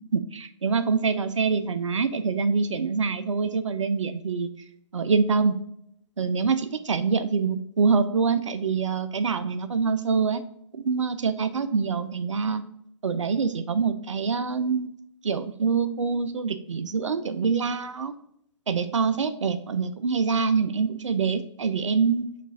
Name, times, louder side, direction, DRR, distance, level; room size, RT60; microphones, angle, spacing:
voice 1, 0.1-4.5 4.9-5.5 6.2-10.4 10.7-12.6 13.0-14.9 15.2-18.1 18.7-22.3, right 5 dB, 80° right, 10 dB, 0.5 m, -25 dB
7.1 x 2.5 x 2.6 m, 0.74 s
figure-of-eight pair, 140°, 16 cm